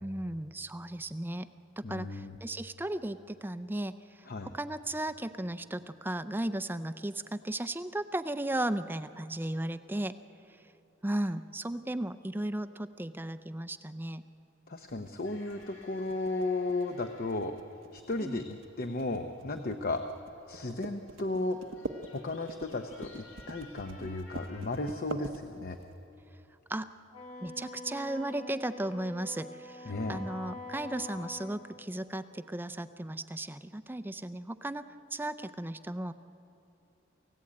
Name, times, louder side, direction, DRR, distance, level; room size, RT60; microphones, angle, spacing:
voice 1, 0.0-1.5 1.8-3.9 4.4-10.1 11.0-14.2 18.2-18.4 23.9-24.1 26.7-26.9 27.4-36.1, right 1 dB, 10° right, 12 dB, 0.5 m, -35 dB
voice 2, 1.8-2.4 4.3-4.5 14.7-17.6 17.9-20.0 20.5-21.6 22.1-25.8 29.9-30.2, left 2 dB, 50° left, 6 dB, 0.9 m, -34 dB
sound 1, 14.9-25.9, right 2 dB, 85° right, 1.0 m, -44 dB
sound 2, 15.2-24.9, left 2 dB, 80° left, 6.2 m, -58 dB
Wind instrument woodwind instrument, 27.1-31.6, left 2 dB, 30° left, 2.0 m, -45 dB
29.0 x 16.0 x 8.6 m, 2.9 s
head